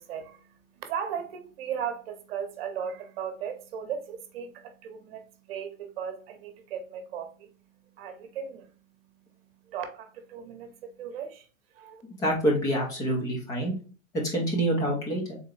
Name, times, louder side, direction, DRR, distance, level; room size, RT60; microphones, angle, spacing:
voice 1, 0.0-11.5 11.7-12.0, right 8 dB, 45° right, 1.0 m, -37 dB
voice 2, 12.2-13.7 14.2-15.4, right 1 dB, 10° left, 0.5 m, -26 dB
3.9 x 3.3 x 3.2 m
hypercardioid pair, 155°, 42 cm